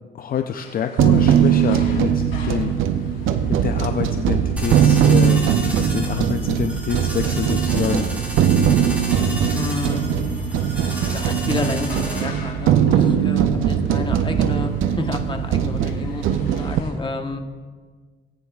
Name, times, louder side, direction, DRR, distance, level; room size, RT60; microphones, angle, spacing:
voice 1, 0.2-2.8 3.5-5.5 5.8-8.5, left 8 dB, 45° left, 6 dB, 0.5 m, -27 dB
sound 1, 0.6-16.9, left 4 dB, 85° left, 3.2 m, -44 dB
sound 2, 1.0-16.8, right 8 dB, 85° right, 0.6 m, -20 dB
sound 3, 4.6-12.2, equal, 5° right, 3.3 m, -33 dB
voice 2, 9.5-10.0 11.1-17.4, left 2 dB, 25° left, 5 dB, 1.1 m, -30 dB
18.0 x 9.3 x 2.4 m, 1.5 s
cardioid pair, 90°, 20 cm